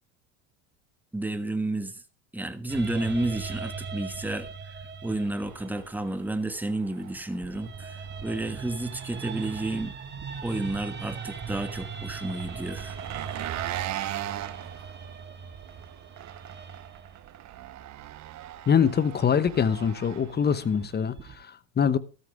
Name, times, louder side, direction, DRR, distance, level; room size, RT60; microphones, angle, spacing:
voice 1, 1.1-2.0 2.3-9.9 10.4-13.0, right 2 dB, 5° right, 1.3 m, -31 dB
sound 1, 2.7-6.9 7.4-17.5 19.5-21.4, right 5 dB, 25° right, 1.8 m, -40 dB
Engine, 5.2-21.0, right 13 dB, 45° right, 1.0 m, -41 dB
voice 2, 18.7-22.0, left 7 dB, 25° left, 0.9 m, -24 dB
13.5 x 13.0 x 3.5 m
supercardioid pair, 100°, 40 cm